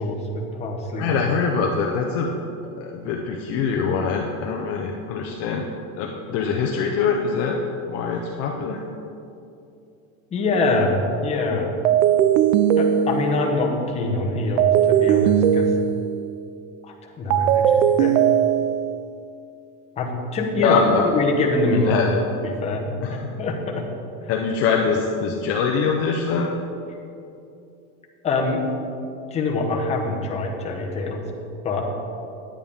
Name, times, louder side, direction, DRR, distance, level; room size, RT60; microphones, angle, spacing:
voice 1, 0.0-1.2 10.3-11.7 12.8-15.7 16.8-18.1 20.0-20.8 21.1-22.1 22.4-23.9 28.2-28.6 29.3-31.2 31.6-31.9, left 2 dB, 15° left, 0 dB, 0.9 m, -24 dB
voice 2, 1.0-2.3 2.8-5.6 6.0-7.6 7.9-8.8 20.6-21.1 21.7-22.2 23.0-23.3 24.3-26.5, left 5 dB, 40° left, 0 dB, 0.6 m, -23 dB
sound 1, 10.5-10.8 11.8-13.6 14.6-16.3 17.3-19.0, right 9 dB, 80° right, 0.5 m, -19 dB
10.0 x 8.9 x 3.6 m, 2.7 s
supercardioid pair, 165°, 38 cm